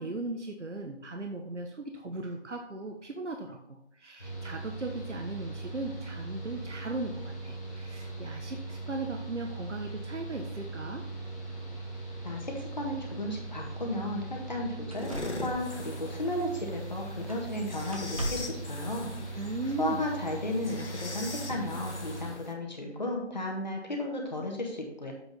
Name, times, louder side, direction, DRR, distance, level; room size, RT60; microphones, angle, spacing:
voice 1, 0.0-11.0 19.3-20.0, right 2 dB, 90° right, 3 dB, 1.2 m, -38 dB
Mechanical fan, 4.2-22.3, right 2 dB, 15° left, 1.8 m, -40 dB
voice 2, 12.2-15.1 15.4-19.1 19.8-25.1, left 1 dB, 40° left, 0 dB, 1.6 m, -34 dB
sound 1, 13.6-13.7 14.4-14.5 14.9-16.9 17.3-17.6 17.9-18.7 19.8-19.9, equal, 30° right, 1.0 m, -40 dB
sound 2, 14.9-22.5, left 2 dB, 80° left, 1.7 m, -42 dB
7.7 x 4.7 x 5.5 m, 0.80 s
figure-of-eight pair, 175°, 34 cm